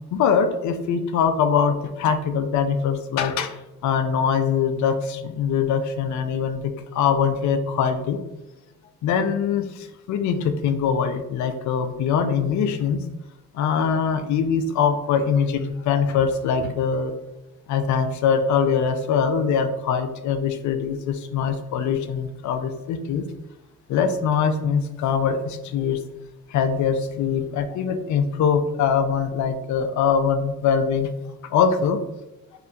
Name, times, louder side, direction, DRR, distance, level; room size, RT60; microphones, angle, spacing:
voice 1, 0.1-3.5 3.8-8.2 9.0-13.0 13.5-17.1 17.7-23.2 23.9-26.0 26.5-31.1 31.5-32.0, left 6 dB, 55° left, 9 dB, 0.4 m, -22 dB
2.8 x 2.1 x 2.4 m, 0.99 s
supercardioid pair, 60°, 36 cm